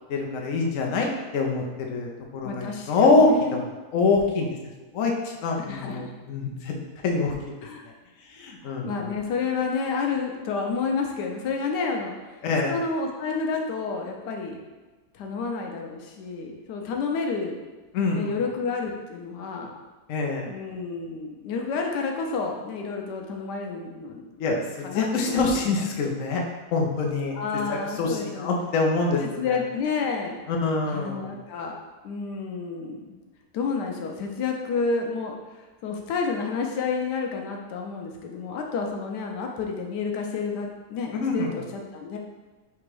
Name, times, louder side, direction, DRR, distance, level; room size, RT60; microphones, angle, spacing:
voice 1, 0.1-3.6 3.9-4.5 4.9-6.7 7.0-7.3 8.3-9.1 12.4-12.7 17.9-18.3 20.1-20.5 24.4-26.4 26.7-27.3 27.7-29.4 30.5-31.3 41.2-41.6, left 3 dB, 65° left, 0 dB, 0.9 m, -25 dB
voice 2, 2.4-3.6 5.7-6.1 7.6-7.9 8.6-12.1 12.7-14.6 15.1-17.5 18.1-19.7 20.5-24.4 24.8-25.6 27.3-28.5 29.2-30.4 30.9-31.8 32.0-33.2 33.5-35.4 35.8-42.2, left 4 dB, 90° left, 1 dB, 1.2 m, -30 dB
3.5 x 3.0 x 4.6 m, 1.2 s
omnidirectional pair, 1.7 m